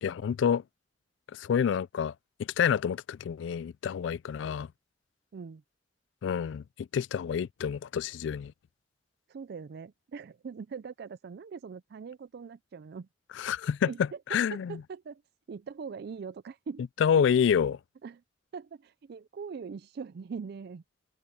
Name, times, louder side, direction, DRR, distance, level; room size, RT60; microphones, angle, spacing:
voice 1, 0.0-0.6 1.3-2.1 2.4-4.7 6.2-8.5 13.4-14.8 17.0-17.8, left 7 dB, 75° left, 0.3 m, -28 dB
voice 2, 9.3-13.1 13.9-15.2 15.5-16.8 18.0-18.2 18.5-20.8, right 5 dB, 60° right, 0.4 m, -42 dB
open air
head